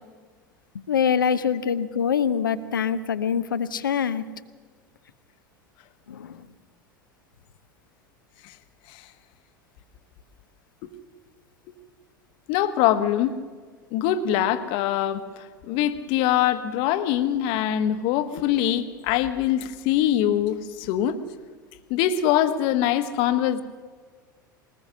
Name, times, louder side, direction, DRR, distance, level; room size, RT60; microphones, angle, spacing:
voice 1, 0.9-4.2 6.1-6.4, left 7 dB, 75° left, 13 dB, 0.9 m, -24 dB
voice 2, 12.5-13.3 13.9-15.2 15.6-21.2 21.9-23.6, left 11 dB, 50° left, 11 dB, 1.3 m, -23 dB
21.0 x 20.0 x 6.4 m, 1.5 s
figure-of-eight pair, 80°, 11 cm